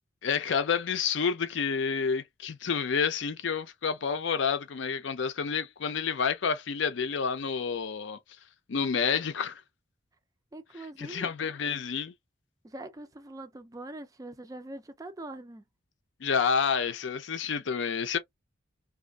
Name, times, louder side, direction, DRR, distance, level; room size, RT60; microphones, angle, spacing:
voice 1, 0.2-8.2 8.7-9.6 11.0-12.1 16.2-18.2, left 6 dB, 70° left, 0.5 m, -29 dB
voice 2, 10.5-11.3 12.6-15.6, right 2 dB, 15° right, 0.3 m, -43 dB
2.5 x 2.4 x 2.2 m
head